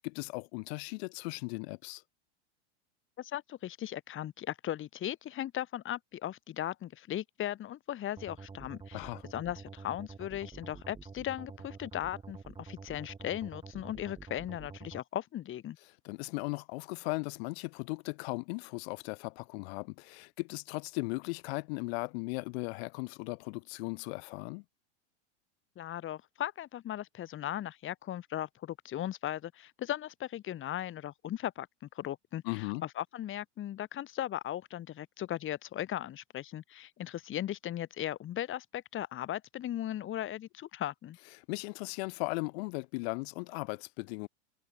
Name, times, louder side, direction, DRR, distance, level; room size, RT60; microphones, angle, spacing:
voice 1, 0.0-2.0 8.9-9.2 16.0-24.6 32.4-32.8 41.5-44.3, left 29 dB, 60° left, 6.1 m, -37 dB
voice 2, 3.2-15.8 25.8-31.7 31.9-41.2, left 12 dB, 35° left, 4.8 m, -37 dB
sound 1, 8.2-15.0, right 4 dB, 15° right, 3.9 m, -48 dB
hypercardioid pair, 110°, 36 cm